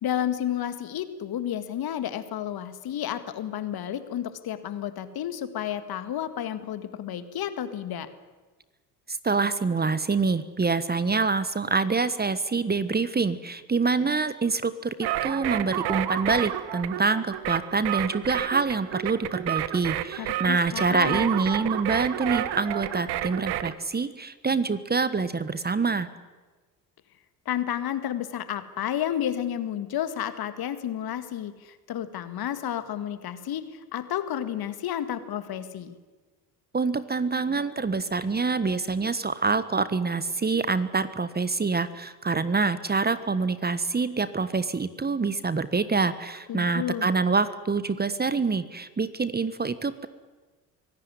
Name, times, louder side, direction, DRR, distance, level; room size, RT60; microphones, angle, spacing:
voice 1, 0.0-8.1 20.2-21.3 27.5-36.0 46.5-47.1, left 10 dB, 50° left, 12 dB, 2.0 m, -31 dB
voice 2, 9.1-26.1 36.7-50.1, right 4 dB, 20° right, 14 dB, 1.3 m, -26 dB
sound 1, 15.0-23.7, right 13 dB, 60° right, 1.3 m, -30 dB
24.5 x 17.0 x 9.8 m, 1.3 s
hypercardioid pair, 60°, 46 cm